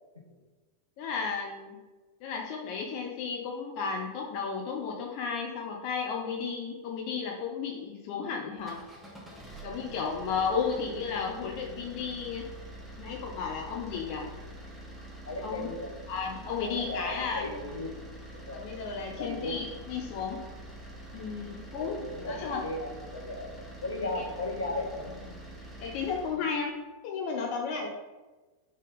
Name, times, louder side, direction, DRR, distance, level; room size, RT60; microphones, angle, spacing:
voice 1, 1.0-1.8 2.2-8.8 9.6-12.4 13.0-14.3 15.4-15.7 16.1-17.5 18.5-20.4 21.1-22.0 22.3-22.6 24.1-24.2 25.8-26.7 27.0-27.9, left 5 dB, 45° left, 0 dB, 0.6 m, -33 dB
sound 1, 8.5-26.4, right 1 dB, 5° right, 0.9 m, -46 dB
voice 2, 9.9-10.3 15.3-16.0 16.6-17.9 18.3-18.7 19.2-19.6 21.7-23.5 23.8-25.4, left 2 dB, 75° left, 0 dB, 0.8 m, -36 dB
3.7 x 3.6 x 4.0 m, 1.2 s
figure-of-eight pair, 90°, 0 cm